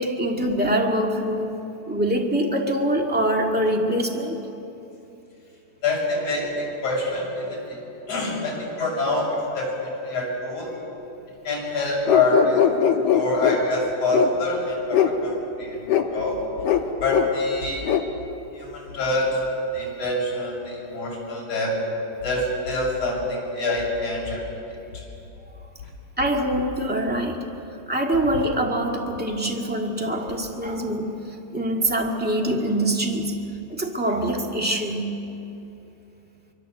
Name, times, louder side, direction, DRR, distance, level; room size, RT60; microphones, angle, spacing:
voice 1, 0.0-1.6 1.9-4.4 19.8-19.9 22.9-23.0 23.5-23.6 26.2-27.5 27.8-31.2 31.5-33.3 33.7-35.2, right 1 dB, 5° right, 0 dB, 0.8 m, -24 dB
voice 2, 5.8-7.8 8.1-10.8 11.4-12.7 13.1-15.8 16.1-16.4 17.0-17.9 18.5-19.4 19.7-21.7 22.2-24.4, left 2 dB, 40° left, -3 dB, 7.5 m, -25 dB
sound 1, 12.1-13.6 14.1-14.3 14.9-15.1 15.9-16.1 16.6-16.8 17.1-17.3 17.8-18.0, left 9 dB, 60° left, 1.8 m, -20 dB
25.0 x 24.0 x 7.8 m, 2.9 s
omnidirectional pair, 4.2 m